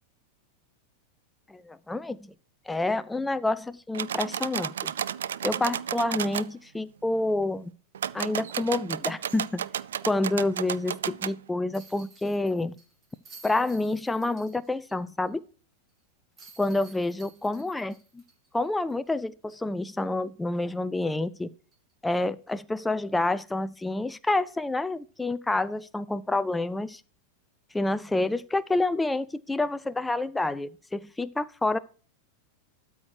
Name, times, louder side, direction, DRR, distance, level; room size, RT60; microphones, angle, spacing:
voice 1, 1.5-2.2 2.7-4.9 5.4-7.7 8.1-9.7 10.1-12.8 13.4-15.4 16.6-18.2 18.5-21.5 22.0-27.0 27.7-31.8, left 2 dB, 5° left, 14 dB, 0.4 m, -28 dB
sound 1, 3.9-6.5 7.9-11.4, right 9 dB, 65° right, 0.3 m, -32 dB
sound 2, 11.7-14.9 15.3-15.4 16.4-19.1 19.5-19.6 21.7-21.9, right 4 dB, 25° right, 2.4 m, -53 dB
12.5 x 4.7 x 4.5 m, 0.40 s
figure-of-eight pair, 90°, 0 cm